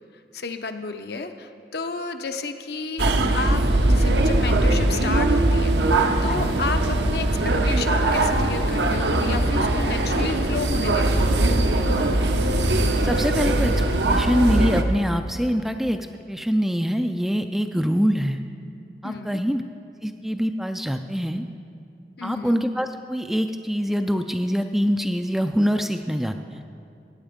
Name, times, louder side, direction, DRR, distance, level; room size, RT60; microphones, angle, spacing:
voice 1, 0.3-5.7 6.2-11.3 19.0-19.4 22.2-22.6, left 4 dB, 60° left, 7 dB, 0.7 m, -32 dB
sound 1, 3.0-14.8, right 1 dB, 75° right, 0.9 m, -21 dB
voice 2, 13.0-13.7 14.1-16.0 16.3-18.4 19.0-19.6 20.0-21.4 22.2-26.6, equal, ahead, 6 dB, 0.3 m, -24 dB
16.0 x 9.2 x 5.1 m, 2.5 s
head